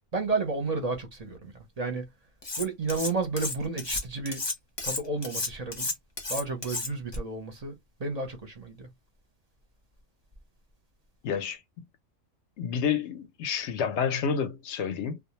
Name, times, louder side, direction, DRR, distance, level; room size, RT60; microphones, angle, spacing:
voice 1, 0.1-2.0 2.6-4.4 4.8-5.9 6.3-8.9, right 3 dB, 40° right, 0.6 m, -32 dB
Cutlery silverware, 2.4-3.1 3.4-7.2, left 3 dB, 30° left, 0.5 m, -32 dB
voice 2, 11.2-11.6 12.6-15.2, left 7 dB, 65° left, 0.8 m, -29 dB
2.4 x 2.0 x 2.9 m
omnidirectional pair, 1.4 m